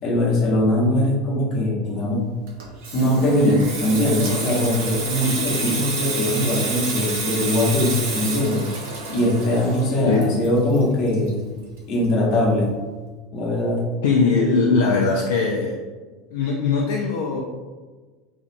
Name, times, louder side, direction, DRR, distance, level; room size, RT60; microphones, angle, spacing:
voice 1, 0.0-2.3 2.9-8.7 9.1-11.4 11.9-12.7 13.3-13.8, left 1 dB, 45° left, -2 dB, 0.9 m, -21 dB
Water tap faucet / Sink (filling or washing), 2.5-11.8 12.1-12.3, right 3 dB, 60° right, 0.7 m, -29 dB
voice 2, 14.0-15.8 16.3-17.4, left 4 dB, 60° left, -1 dB, 0.3 m, -20 dB
3.5 x 2.4 x 3.2 m, 1.4 s
figure-of-eight pair, 75°, 0 cm